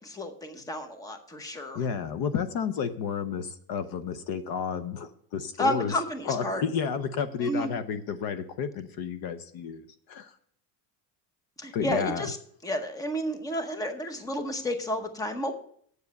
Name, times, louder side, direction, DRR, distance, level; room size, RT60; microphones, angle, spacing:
voice 1, 0.0-1.8 5.6-6.6 7.4-7.7 11.6-12.4 12.6-15.5, left 1 dB, 10° left, 7 dB, 0.8 m, -31 dB
voice 2, 1.7-5.9 6.3-10.3 11.7-12.3, left 6 dB, 55° left, 11 dB, 0.8 m, -31 dB
8.2 x 7.2 x 6.5 m, 0.62 s
cardioid pair, 160°, 44 cm